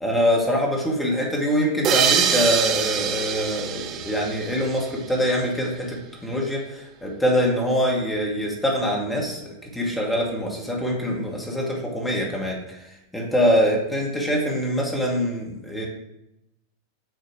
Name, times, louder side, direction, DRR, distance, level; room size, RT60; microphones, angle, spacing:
voice 1, 0.0-9.4 9.7-15.9, equal, 10° left, -2 dB, 1.3 m, -24 dB
sound 1, 1.8-5.2, right 8 dB, 35° right, 0.4 m, -24 dB
7.5 x 2.7 x 4.7 m, 0.87 s
figure-of-eight pair, 90°, 0 cm